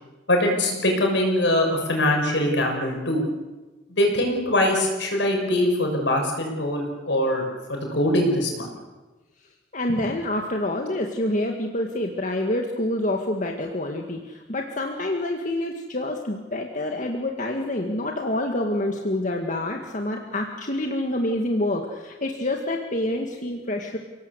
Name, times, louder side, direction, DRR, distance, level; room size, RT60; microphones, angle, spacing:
voice 1, 0.3-3.2 3.9-8.7 9.9-10.0, left 1 dB, 75° left, 2 dB, 6.5 m, -23 dB
voice 2, 9.7-24.0, left 1 dB, 45° left, 2 dB, 2.0 m, -27 dB
29.5 x 18.5 x 8.2 m, 1.2 s
head